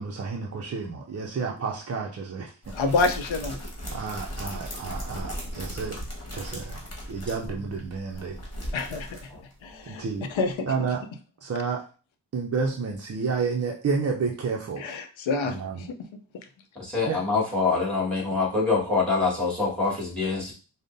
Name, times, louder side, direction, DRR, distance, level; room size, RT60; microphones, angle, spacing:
voice 1, 0.0-2.5 3.9-6.0 6.3-6.8 7.1-8.4 9.8-10.3 10.7-11.0 11.4-11.8 12.3-14.9 15.4-15.8 17.1-17.2, right 5 dB, 35° right, 0 dB, 0.4 m, -30 dB
sound 1, 2.6-9.7 10.0-10.1 10.3-10.5, equal, 35° left, 1.4 m, -37 dB
voice 2, 2.7-3.6 8.7-9.3 9.6-10.7 14.8-15.9, left 3 dB, 85° left, 8 dB, 0.6 m, -28 dB
voice 3, 16.7-20.5, left 4 dB, ahead, -3 dB, 1.5 m, -25 dB
5.0 x 2.0 x 2.6 m, 0.37 s
wide cardioid pair, 90°, 46 cm